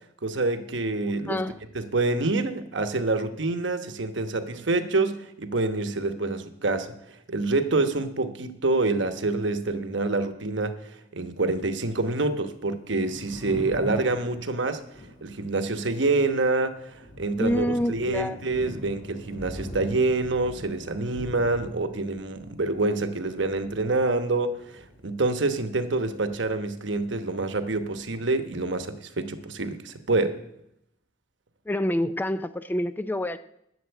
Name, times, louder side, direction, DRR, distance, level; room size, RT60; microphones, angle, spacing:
voice 1, 0.2-1.4 1.7-6.9 7.3-10.8 11.1-14.8 15.2-30.4, right 3 dB, 65° right, 9 dB, 1.1 m, -27 dB
voice 2, 1.1-1.6 17.4-18.4 31.7-33.4, left 1 dB, 10° left, 12 dB, 0.4 m, -27 dB
Thunder, 12.8-27.3 27.5-28.8, left 1 dB, 55° left, 3.8 m, -43 dB
11.5 x 7.6 x 8.1 m, 0.78 s
head